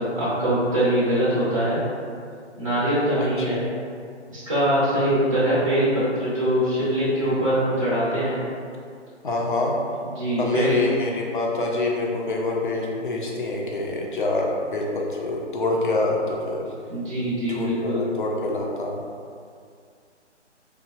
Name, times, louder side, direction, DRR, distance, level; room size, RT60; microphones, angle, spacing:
voice 1, 0.0-1.8 2.6-3.6 4.3-8.4 10.2-10.8 16.9-18.0, right 1 dB, 30° right, -11 dB, 0.6 m, -23 dB
voice 2, 3.2-3.6 9.2-9.7 10.4-16.6 17.3-19.0, left 2 dB, 45° left, -1 dB, 0.4 m, -26 dB
2.9 x 2.0 x 2.8 m, 2.3 s
figure-of-eight pair, 150°, 35 cm